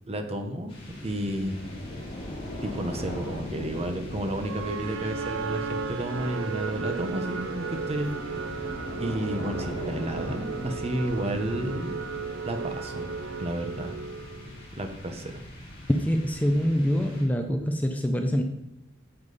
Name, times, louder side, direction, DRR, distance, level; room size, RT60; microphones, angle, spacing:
voice 1, 0.1-1.6 2.6-8.5 9.0-11.9 12.5-13.1 13.4-13.9 14.7-15.4, right 1 dB, 30° right, 5 dB, 1.0 m, -32 dB
sound 1, 0.7-17.6, left 1 dB, 30° left, 3.1 m, -40 dB
sound 2, 4.4-14.6, right 5 dB, 75° right, 0.6 m, -35 dB
voice 2, 15.9-18.4, equal, 10° left, 4 dB, 0.6 m, -25 dB
10.0 x 7.3 x 4.1 m, 0.93 s
head